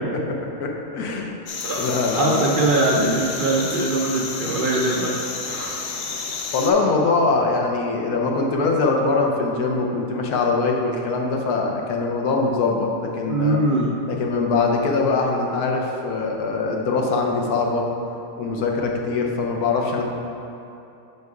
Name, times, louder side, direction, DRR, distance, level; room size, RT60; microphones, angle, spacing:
voice 1, 0.1-1.3 1.7-2.4 6.5-13.6 14.1-17.9 18.4-20.0, left 3 dB, 80° left, 0 dB, 1.2 m, -22 dB
sound 1, 1.5-6.7, left 5 dB, 60° left, 0.6 m, -31 dB
voice 2, 2.2-5.9 13.3-14.0, right 2 dB, 75° right, -3 dB, 0.4 m, -22 dB
5.3 x 4.7 x 4.8 m, 2.8 s
omnidirectional pair, 1.6 m